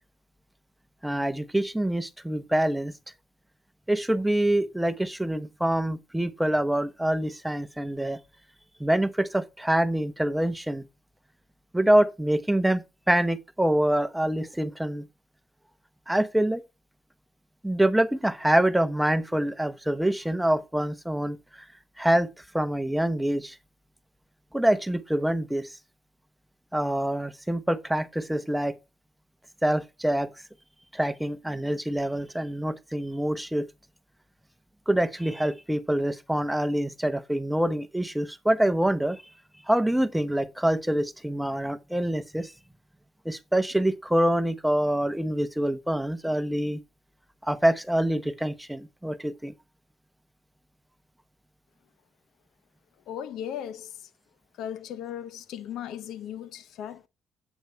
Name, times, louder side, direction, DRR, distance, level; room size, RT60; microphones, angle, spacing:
voice 1, 1.0-2.9 3.9-8.2 8.8-10.8 11.7-15.0 16.1-16.6 17.6-21.4 22.0-22.3 22.5-23.6 24.5-25.7 26.7-28.8 29.6-30.3 30.9-33.7 34.9-39.2 39.7-42.5 43.2-46.8 47.4-49.5, right 1 dB, 5° right, 0.9 m, -25 dB
voice 2, 53.1-54.1 54.6-57.1, left 10 dB, 85° left, 0.7 m, -37 dB
8.2 x 8.1 x 3.3 m
cardioid pair, 90°, 0 cm